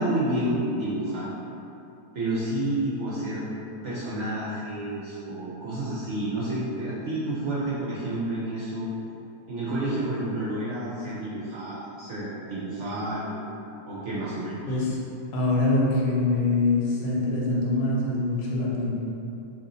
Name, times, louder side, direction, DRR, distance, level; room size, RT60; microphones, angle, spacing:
voice 1, 0.0-1.3 2.1-3.5 3.8-8.9 9.5-13.3 13.9-14.8, right 1 dB, 65° right, -9 dB, 0.7 m, -30 dB
voice 2, 14.7-15.0 15.3-19.0, left 2 dB, 75° left, -5 dB, 1.2 m, -24 dB
2.9 x 2.7 x 3.8 m, 2.8 s
omnidirectional pair, 1.7 m